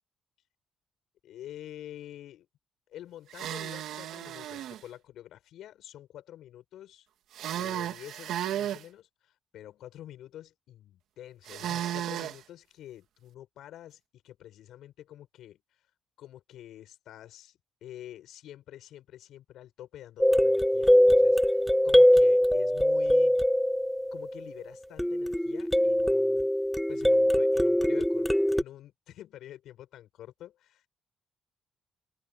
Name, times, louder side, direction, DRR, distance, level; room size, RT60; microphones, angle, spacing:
voice 1, 1.2-2.5 2.9-7.1 7.6-15.8 16.2-23.4 24.1-26.5 26.9-28.3 28.5-30.8, left 12 dB, 80° left, 7.7 m, -47 dB
sound 1, 3.3-4.8 7.3-8.8 11.4-12.4, right 11 dB, 80° right, 2.2 m, -34 dB
sound 2, 20.2-24.5 25.0-28.6, equal, 5° left, 0.3 m, -22 dB
open air
cardioid pair, 90°, 0 cm